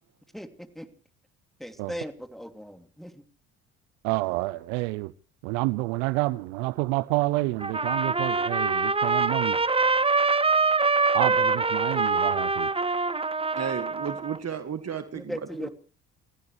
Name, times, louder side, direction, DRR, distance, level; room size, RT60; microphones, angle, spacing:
voice 1, 0.3-0.9 1.6-3.2 15.1-15.7, equal, ahead, 2.7 m, -38 dB
voice 2, 4.0-5.1 5.4-9.6 11.1-12.7, right 21 dB, 80° right, 0.7 m, -28 dB
Trumpet, 7.6-14.4, right 4 dB, 15° right, 1.0 m, -24 dB
voice 3, 13.6-15.7, right 7 dB, 40° right, 1.8 m, -33 dB
29.5 x 15.5 x 3.2 m
hypercardioid pair, 60°, 37 cm